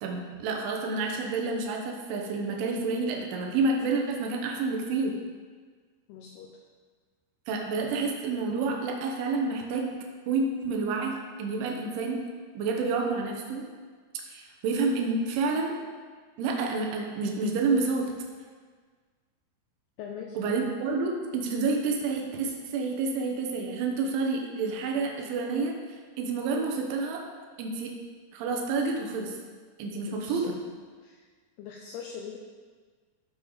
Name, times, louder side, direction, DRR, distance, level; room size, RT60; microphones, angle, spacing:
voice 1, 0.0-5.2 7.5-9.9 10.3-12.2 12.6-13.6 14.3-15.7 16.4-18.1 20.4-25.8 26.2-27.2 27.6-27.9 28.3-29.4 29.8-30.5, right 4 dB, 90° right, 1 dB, 3.5 m, -29 dB
voice 2, 6.1-6.6 20.0-20.4 30.1-30.6 31.0-31.3 31.6-32.4, left 7 dB, 80° left, 2 dB, 2.3 m, -41 dB
15.0 x 6.8 x 4.0 m, 1.5 s
omnidirectional pair, 5.3 m